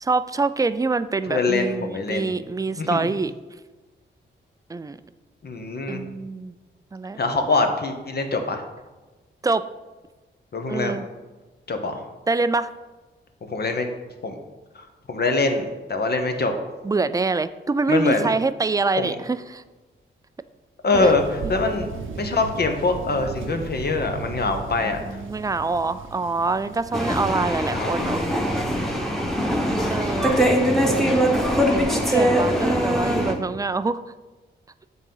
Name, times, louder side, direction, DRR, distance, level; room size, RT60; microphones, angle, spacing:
voice 1, 0.0-3.3 4.7-5.0 5.9-6.5 6.9-7.2 9.4-9.7 10.7-11.0 12.3-12.7 16.8-19.6 20.9-21.1 24.8-28.3 29.9-30.3 30.8-31.2 31.7-34.0, right 3 dB, 15° right, 13 dB, 0.3 m, -25 dB
voice 2, 1.3-2.4 2.8-3.0 5.4-6.0 7.2-8.6 10.5-11.0 11.7-12.0 13.5-13.9 14.2-14.4 14.7-16.5 17.9-18.3 19.0-19.2 20.8-21.9 22.2-25.0 27.7-28.1 30.2-30.6 33.0-33.3, left 3 dB, 50° left, 5 dB, 1.0 m, -24 dB
Thunder, 20.9-27.6, right 5 dB, 80° right, 0.7 m, -36 dB
sound 1, 26.9-33.3, equal, ahead, 1.2 m, -22 dB
8.2 x 3.8 x 5.5 m, 1.2 s
cardioid pair, 70°, 21 cm